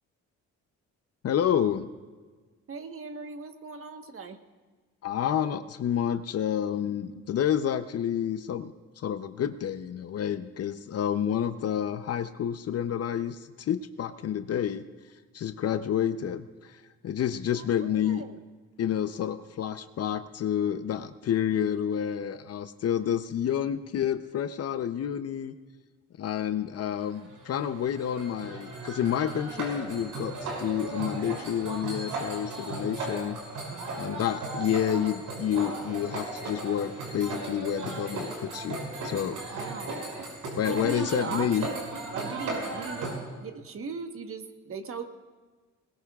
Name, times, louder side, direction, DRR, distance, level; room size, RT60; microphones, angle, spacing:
voice 1, 1.2-1.9 5.0-14.8 15.3-18.2 18.8-25.5 26.2-33.4 33.9-39.4 40.6-41.7, left 9 dB, 55° left, 11 dB, 0.7 m, -29 dB
voice 2, 2.7-4.4 17.6-18.4 33.7-34.1 39.3-40.1 40.7-41.8 42.1-43.1 43.4-45.0, right 5 dB, 45° right, 7 dB, 1.3 m, -39 dB
sound 1, 27.0-43.1, right 2 dB, 85° right, 5.6 m, -36 dB
20.5 x 19.5 x 2.4 m, 1.4 s
cardioid pair, 90°, 30 cm